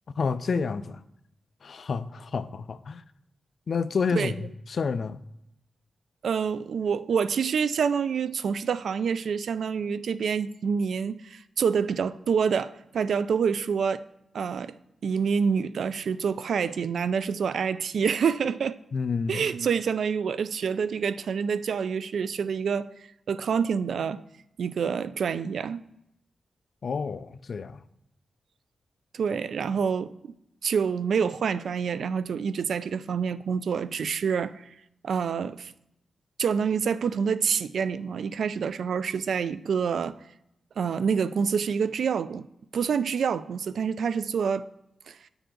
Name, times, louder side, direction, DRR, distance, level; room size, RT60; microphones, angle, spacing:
voice 1, 0.2-1.0 1.6-3.0 3.7-5.2 18.9-19.5 26.8-27.8, left 5 dB, 55° left, 0.4 m, -29 dB
voice 2, 6.2-14.0 14.3-14.7 15.0-18.8 19.3-22.9 23.3-24.2 24.6-25.8 29.1-30.1 30.6-34.7 35.0-35.7 36.4-40.2 40.8-42.4 42.7-44.7 45.1-45.2, right 6 dB, 75° right, 0.3 m, -27 dB
9.0 x 7.0 x 3.8 m
wide cardioid pair, 105°, 0 cm